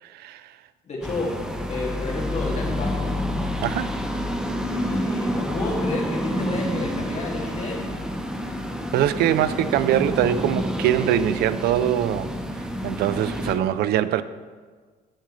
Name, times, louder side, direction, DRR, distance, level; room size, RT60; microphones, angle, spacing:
voice 1, 0.0-0.5 3.6-3.9 8.9-12.3 12.6-14.2, right 11 dB, 70° right, 0.4 m, -23 dB
voice 2, 0.8-1.4 1.7-3.1 4.7-7.8, left 2 dB, 40° left, 2.3 m, -30 dB
sound 1, 1.0-13.6, equal, 5° right, 0.8 m, -28 dB
10.5 x 7.4 x 3.2 m
cardioid pair, 110°, 17 cm